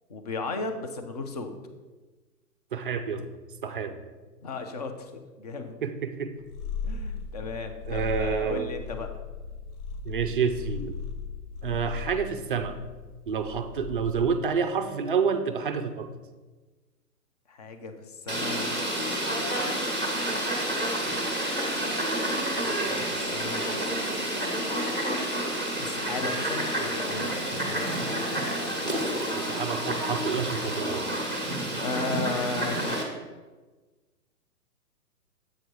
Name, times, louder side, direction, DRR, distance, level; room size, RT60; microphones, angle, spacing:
voice 1, 0.1-1.5 4.4-5.7 6.8-9.1 17.5-18.8 22.5-23.7 25.8-27.9 31.8-32.9, left 3 dB, 25° left, 7 dB, 0.4 m, -35 dB
voice 2, 2.7-3.3 3.6-4.0 5.8-6.3 7.9-8.7 10.1-11.0 11.6-12.8 13.3-16.1 28.8-31.1, right 6 dB, 35° right, 9 dB, 0.4 m, -29 dB
Purr, 6.4-14.5, left 5 dB, 70° left, 0.7 m, -37 dB
Fowl, 18.3-33.0, right 1 dB, 10° left, 1.1 m, -29 dB
7.7 x 5.0 x 4.6 m, 1.3 s
hypercardioid pair, 140°, 48 cm